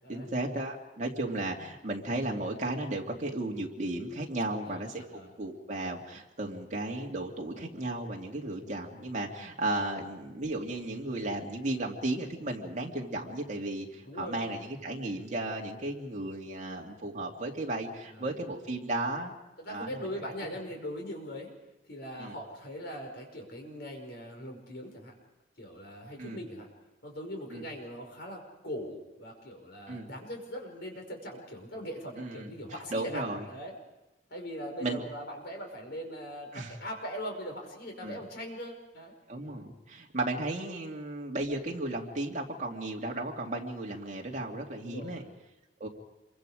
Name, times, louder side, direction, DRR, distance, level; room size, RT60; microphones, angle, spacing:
voice 1, 0.1-19.3 19.7-20.1 22.2-22.4 26.2-26.4 27.5-27.6 29.9-30.1 32.2-32.5 32.9-33.4 34.8-35.0 36.5-36.7 38.0-38.2 39.3-45.2 45.8-45.9, right 2 dB, 40° right, 0 dB, 2.6 m, -34 dB
voice 2, 4.4-5.3 8.5-8.7 14.0-14.5 18.1-18.3 19.6-21.5 21.9-25.1 25.6-26.7 27.0-33.7 34.3-39.4 44.8-45.3, equal, 60° left, 2 dB, 5.4 m, -41 dB
27.5 x 24.0 x 5.0 m, 1.0 s
head